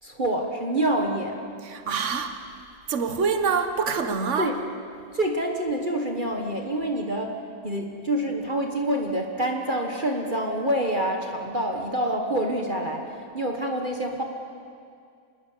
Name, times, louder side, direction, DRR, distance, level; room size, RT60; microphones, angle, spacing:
voice 1, 0.0-1.4 4.4-4.6 5.1-7.4 7.6-14.2, right 1 dB, 30° right, 2 dB, 1.6 m, -27 dB
voice 2, 1.6-2.4 2.9-4.5, right 5 dB, 45° right, 7 dB, 1.6 m, -25 dB
26.0 x 21.5 x 6.8 m, 2.3 s
omnidirectional pair, 1.8 m